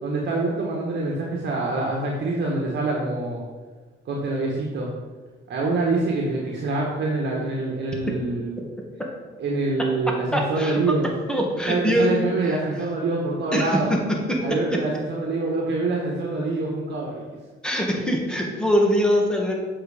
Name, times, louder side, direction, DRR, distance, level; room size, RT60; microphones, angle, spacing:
voice 1, 0.0-3.4 4.1-4.9 5.5-8.5 9.4-11.1 11.7-13.9 14.4-17.2, right 3 dB, 60° right, -2 dB, 1.6 m, -25 dB
voice 2, 10.3-10.8 11.3-12.6 13.5-14.0 14.3-14.4 14.7-14.8 17.6-19.5, equal, 5° left, 0 dB, 2.0 m, -23 dB
7.9 x 5.8 x 5.1 m, 1.3 s
cardioid pair, 90°, 20 cm